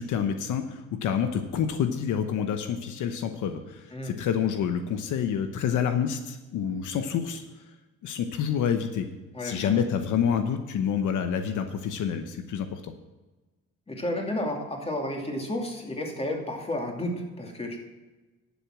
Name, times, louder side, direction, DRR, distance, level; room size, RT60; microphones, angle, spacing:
voice 1, 0.0-7.4 8.0-9.1 9.4-12.9, left 8 dB, 80° left, 7 dB, 1.0 m, -28 dB
voice 2, 9.3-9.8 13.9-17.8, left 1 dB, 20° left, 1 dB, 2.6 m, -32 dB
11.0 x 7.3 x 6.0 m, 1.2 s
cardioid pair, 90°, 30 cm